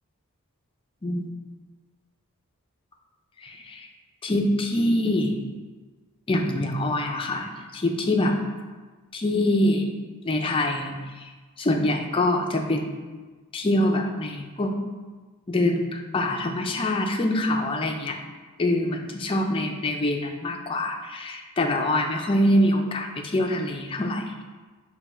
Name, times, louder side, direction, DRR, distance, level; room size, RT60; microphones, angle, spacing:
voice 1, 1.0-1.3 3.4-3.9 4.2-5.4 6.3-8.3 9.1-9.9 10.2-11.3 11.6-12.9 13.5-14.7 15.5-18.2 18.6-24.2, left 1 dB, 25° left, 2 dB, 0.4 m, -24 dB
5.6 x 2.3 x 4.2 m, 1.4 s
head